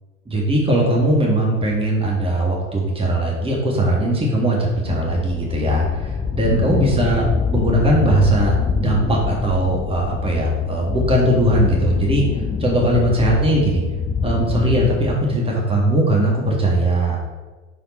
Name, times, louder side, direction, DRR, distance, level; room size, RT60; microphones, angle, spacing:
voice 1, 0.3-12.2 12.6-13.8 14.2-17.2, right 1 dB, 15° right, -2 dB, 1.8 m, -19 dB
sound 1, 4.8-15.2, left 5 dB, 15° left, 0.4 m, -24 dB
6.3 x 4.7 x 4.3 m, 1.2 s
figure-of-eight pair, 70°, 39 cm